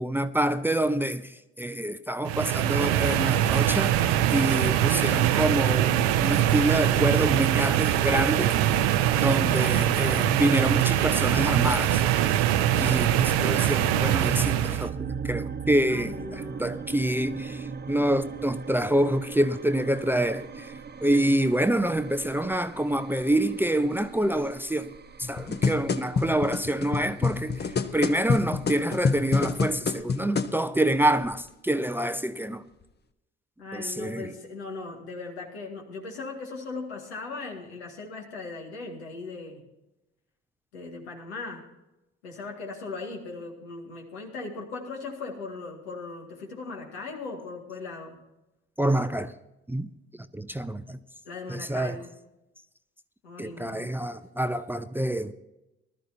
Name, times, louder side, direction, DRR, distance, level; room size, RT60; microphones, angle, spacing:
voice 1, 0.0-8.6 9.2-12.1 12.8-24.9 25.2-32.6 33.7-34.3 48.8-49.3 49.7-49.9 50.3-51.0 51.5-52.0 53.4-55.3, right 1 dB, 5° right, 0.6 m, -27 dB
sound 1, 2.3-14.9, right 11 dB, 70° right, 0.8 m, -23 dB
sound 2, 14.3-30.0, right 5 dB, 30° right, 1.1 m, -39 dB
voice 2, 15.9-16.7 33.6-39.6 40.7-41.6 42.2-48.2 51.2-52.1 53.2-53.9, left 3 dB, 80° left, 2.1 m, -38 dB
sound 3, 25.2-30.6 31.2-31.3, left 5 dB, 30° left, 1.0 m, -27 dB
19.5 x 12.5 x 2.8 m
hypercardioid pair, 50°, 32 cm